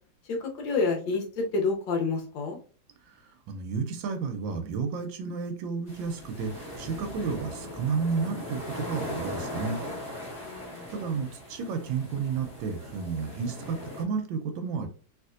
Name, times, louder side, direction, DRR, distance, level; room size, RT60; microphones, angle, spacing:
voice 1, 0.3-2.6 10.4-10.9, left 4 dB, 70° left, 2 dB, 1.4 m, -29 dB
voice 2, 3.5-9.8 10.9-14.9, right 5 dB, 75° right, 6 dB, 1.2 m, -32 dB
sound 1, 5.9-14.0, left 1 dB, 15° left, 0.9 m, -39 dB
3.4 x 2.9 x 2.4 m, 0.39 s
omnidirectional pair, 2.3 m